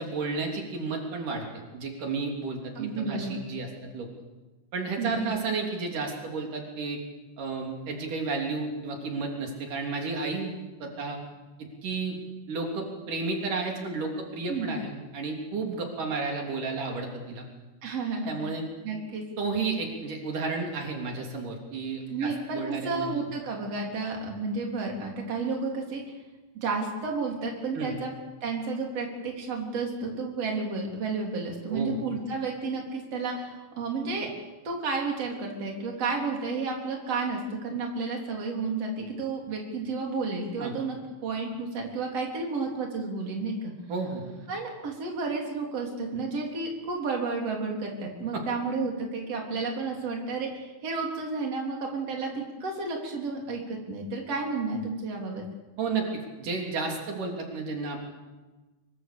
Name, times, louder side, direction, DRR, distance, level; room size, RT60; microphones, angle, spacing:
voice 1, 0.0-1.4 1.7-4.1 4.7-7.0 7.4-10.5 10.8-11.2 11.6-12.2 12.5-17.5 18.3-18.6 19.4-23.3 27.7-28.0 31.7-32.0 40.6-40.7 43.9-44.2 48.3-48.4 55.8-56.1 56.4-58.0, right 4 dB, 85° right, 1 dB, 4.8 m, -32 dB
voice 2, 2.8-3.4 5.0-5.2 14.5-14.7 17.8-18.6 18.8-19.3 22.1-26.0 26.5-28.1 28.4-34.3 34.6-43.7 44.5-55.4, right 3 dB, 50° right, 0 dB, 4.7 m, -31 dB
24.5 x 24.0 x 6.9 m, 1.2 s
omnidirectional pair, 3.6 m